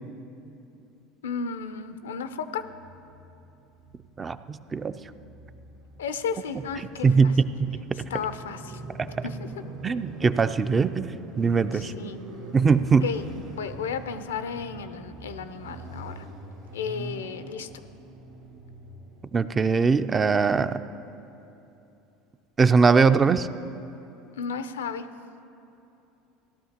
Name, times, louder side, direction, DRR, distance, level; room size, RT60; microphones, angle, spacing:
voice 1, 1.2-2.6 6.0-7.3 8.1-8.8 9.2-9.4 11.7-12.2 13.0-13.3 13.5-16.3 16.7-17.7 24.3-25.1, left 6 dB, 90° left, 11 dB, 0.5 m, -33 dB
Motorcycle, 1.9-20.1, right 2 dB, 90° right, 2.8 m, -44 dB
voice 2, 4.2-5.0 7.0-7.8 9.0-9.3 9.8-11.9 12.5-13.1 19.3-20.8 22.6-23.5, right 5 dB, 25° right, 12 dB, 0.4 m, -21 dB
17.0 x 12.0 x 2.9 m, 2.8 s
hypercardioid pair, 85°, 0 cm